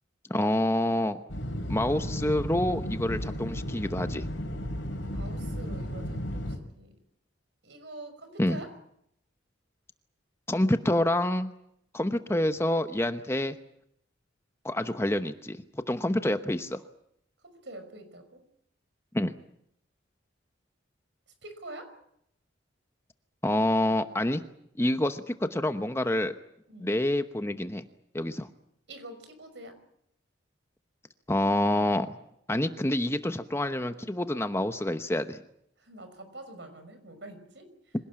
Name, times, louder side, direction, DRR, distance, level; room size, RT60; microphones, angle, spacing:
voice 1, 0.3-1.2 1.7-4.2 8.4-8.6 10.5-11.5 11.9-13.6 14.6-16.8 19.1-19.3 23.4-24.4 24.8-26.4 26.8-27.8 28.1-28.5 31.3-32.2 32.5-35.4, left 1 dB, 15° left, 9 dB, 0.9 m, -27 dB
sound 1, 1.3-6.6, equal, 75° left, 4.7 m, -34 dB
voice 2, 5.1-6.9 7.6-8.7 17.4-18.4 21.4-22.0 26.7-26.9 28.9-29.8 35.8-38.0, right 2 dB, 65° right, 8 dB, 5.6 m, -45 dB
25.5 x 18.0 x 8.7 m, 0.75 s
head